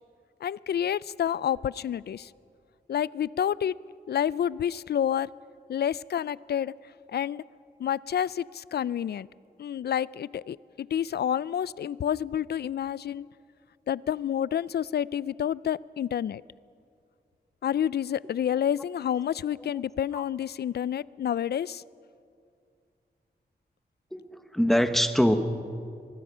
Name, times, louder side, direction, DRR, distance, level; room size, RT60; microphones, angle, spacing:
voice 1, 0.4-2.3 2.9-3.8 4.1-5.3 5.7-6.7 7.1-7.4 7.8-9.3 9.6-13.3 13.9-16.4 17.6-21.8, left 9 dB, 75° left, 21 dB, 0.4 m, -29 dB
voice 2, 24.1-25.4, equal, ahead, 9 dB, 1.2 m, -23 dB
24.5 x 20.0 x 5.6 m, 2.4 s
wide cardioid pair, 110°, 17 cm